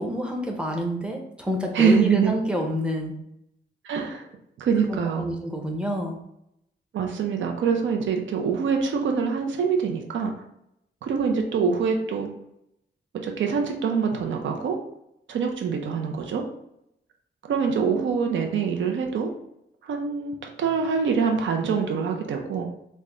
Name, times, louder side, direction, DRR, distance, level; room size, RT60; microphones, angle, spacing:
voice 1, 0.0-3.1 5.2-6.2, equal, 5° right, 1 dB, 0.6 m, -28 dB
voice 2, 1.7-2.3 3.8-4.3 4.6-5.3 6.9-10.3 11.0-12.3 13.2-14.8 15.3-16.4 17.5-19.3 19.8-22.7, right 6 dB, 85° right, 3 dB, 0.5 m, -24 dB
3.4 x 2.1 x 3.7 m, 0.78 s
wide cardioid pair, 130°, 19 cm